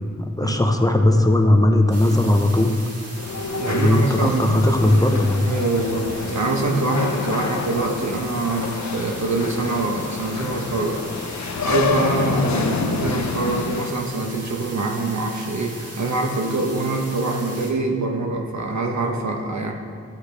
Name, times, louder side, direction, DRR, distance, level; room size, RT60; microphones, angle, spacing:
voice 1, 0.2-2.8 3.6-5.5, left 1 dB, 10° left, 3 dB, 0.7 m, -18 dB
sound 1, 1.9-17.7, right 1 dB, 55° right, 1.6 m, -39 dB
sound 2, 3.2-13.9, left 5 dB, 70° left, 0.6 m, -28 dB
voice 2, 3.5-4.5 5.5-11.0 11.6-19.7, right 3 dB, 70° right, 2 dB, 1.1 m, -24 dB
13.0 x 8.1 x 3.4 m, 2.2 s
wide cardioid pair, 90°, 29 cm